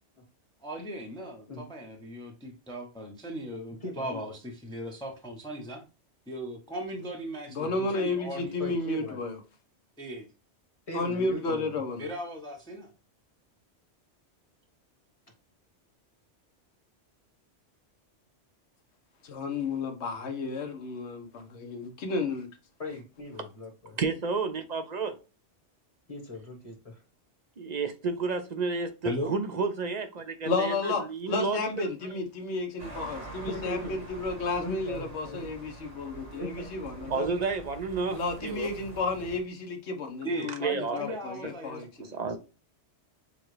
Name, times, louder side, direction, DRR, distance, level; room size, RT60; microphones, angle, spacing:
voice 1, 0.6-5.8 6.3-8.6 10.0-10.3 12.0-12.9 29.0-29.3 40.2-41.8, equal, 5° left, 0.7 m, -37 dB
voice 2, 3.8-4.4 8.6-9.2 10.9-11.7 22.8-24.0 26.1-27.0 33.5-33.9 34.6-35.4 36.3-37.1, left 1 dB, 30° left, 1.4 m, -39 dB
voice 3, 7.5-9.4 10.9-12.1 19.2-22.5 30.4-31.0 31.3-37.3 38.1-42.2, left 3 dB, 70° left, 1.2 m, -32 dB
voice 4, 24.0-25.2 27.6-31.9 37.1-38.7 40.5-41.2 41.4-41.5 42.0-42.4, right 4 dB, 50° right, 0.6 m, -31 dB
sound 1, 32.8-39.4, right 3 dB, 80° right, 1.9 m, -45 dB
6.8 x 2.3 x 3.2 m
omnidirectional pair, 1.2 m